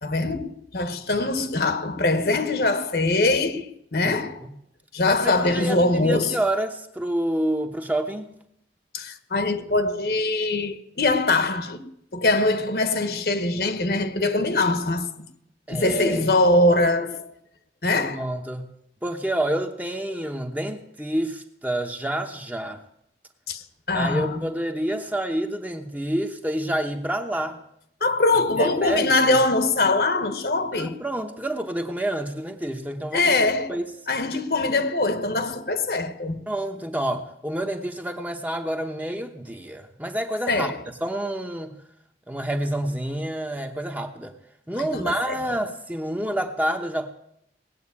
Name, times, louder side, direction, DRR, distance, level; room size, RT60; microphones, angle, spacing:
voice 1, 0.0-4.4 4.9-6.3 8.9-11.8 12.1-15.3 15.7-17.3 17.8-18.2 23.5-24.4 28.0-31.0 33.1-33.7 34.1-36.4 40.5-40.8 44.8-45.4, left 2 dB, 60° left, 1.2 m, -23 dB
voice 2, 4.0-4.5 5.2-8.3 15.7-16.3 17.9-18.7 19.0-22.8 23.9-27.6 28.6-29.4 30.7-33.4 33.7-33.9 36.5-40.7 41.0-41.8 42.3-44.3 44.7-47.1, right 1 dB, 10° right, 0.9 m, -28 dB
18.5 x 7.9 x 8.5 m
head